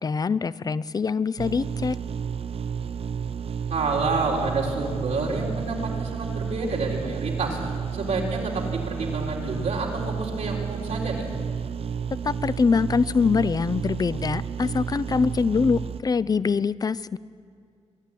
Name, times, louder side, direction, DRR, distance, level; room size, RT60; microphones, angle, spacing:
voice 1, 0.0-2.0 12.2-17.2, left 5 dB, 30° left, 17 dB, 0.4 m, -24 dB
sound 1, 1.4-16.0, right 7 dB, 55° right, 0.5 m, -31 dB
voice 2, 3.7-7.6 7.9-11.3, right 3 dB, 90° right, -2 dB, 3.7 m, -28 dB
24.5 x 11.5 x 9.2 m, 2.3 s
wide cardioid pair, 135°, 12 cm